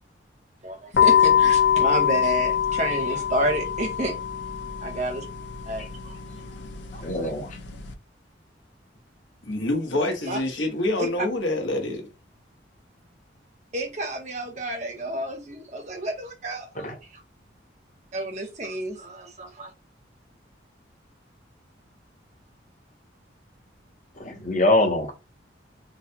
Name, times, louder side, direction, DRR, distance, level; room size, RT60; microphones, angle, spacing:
voice 1, 0.6-4.2 4.8-5.3 5.7-6.4 10.2-10.4 11.0-11.3 13.7-17.2 18.1-19.7, right 1 dB, 35° right, 0.8 m, -30 dB
sound 1, 0.9-7.9, left 8 dB, 70° left, 0.5 m, -24 dB
voice 2, 7.0-7.5 16.8-16.9 24.2-25.1, left 2 dB, 40° left, 0.8 m, -23 dB
voice 3, 9.4-12.1, left 1 dB, 90° left, 1.1 m, -26 dB
3.8 x 2.2 x 2.7 m
head